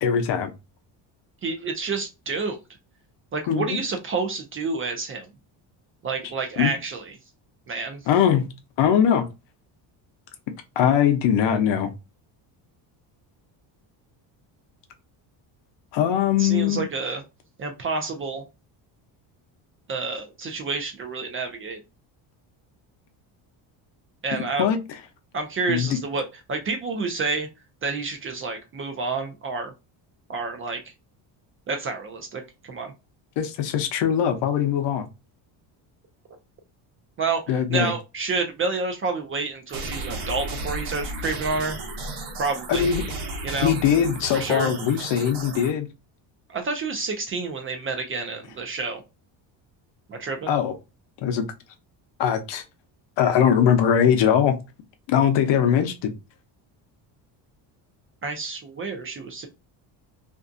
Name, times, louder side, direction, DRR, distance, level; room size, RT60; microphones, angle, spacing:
voice 1, 0.0-0.5 3.5-3.8 6.6-6.7 8.1-8.4 8.8-9.2 10.8-11.9 15.9-16.8 24.6-24.8 25.7-26.0 33.4-35.1 37.5-37.9 42.7-43.0 43.6-45.9 50.5-50.7 51.2-51.5 52.2-52.6 53.2-54.6 55.1-56.1, left 8 dB, 65° left, 0.7 m, -21 dB
voice 2, 1.4-2.6 3.3-5.3 6.0-7.1 7.7-8.0 16.4-17.2 17.6-18.4 19.9-21.8 24.2-24.7 25.3-27.5 27.8-29.7 30.3-30.9 31.7-32.9 37.2-41.8 42.4-42.9 43.4-43.7 44.3-44.7 46.5-49.0 50.1-50.5 58.2-59.5, right 4 dB, 30° right, 0.4 m, -29 dB
sound 1, 39.7-45.7, right 2 dB, 65° right, 0.9 m, -34 dB
2.6 x 2.2 x 2.5 m
cardioid pair, 130°, 46 cm